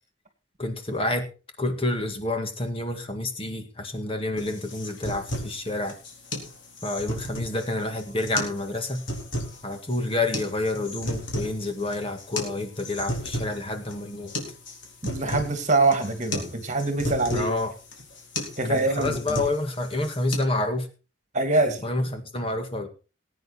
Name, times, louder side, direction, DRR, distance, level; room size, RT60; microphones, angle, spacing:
voice 1, 0.6-1.3 1.6-6.0 6.8-9.0 9.6-14.3 17.3-17.7 18.4-20.9 21.8-22.9, left 2 dB, 30° left, 6 dB, 1.9 m, -28 dB
sound 1, 4.4-20.4, left 1 dB, 75° left, 4.0 m, -34 dB
voice 2, 15.0-17.5 18.6-19.2 21.3-21.8, right 2 dB, 40° right, 8 dB, 2.5 m, -24 dB
19.0 x 9.2 x 4.3 m, 0.33 s
head